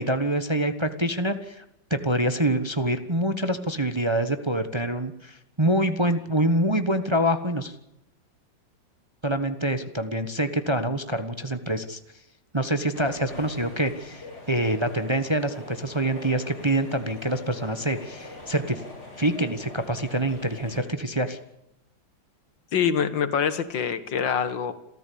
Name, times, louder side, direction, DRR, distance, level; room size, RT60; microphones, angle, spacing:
voice 1, 0.0-1.6 1.9-7.8 9.2-12.0 12.5-18.8 19.2-21.4, right 1 dB, 15° right, 9 dB, 1.1 m, -26 dB
sound 1, 12.9-20.8, left 2 dB, 35° left, 6.4 m, -43 dB
voice 2, 22.7-24.7, left 7 dB, 80° left, 12 dB, 2.2 m, -25 dB
28.0 x 14.0 x 8.6 m, 0.85 s
omnidirectional pair, 2.0 m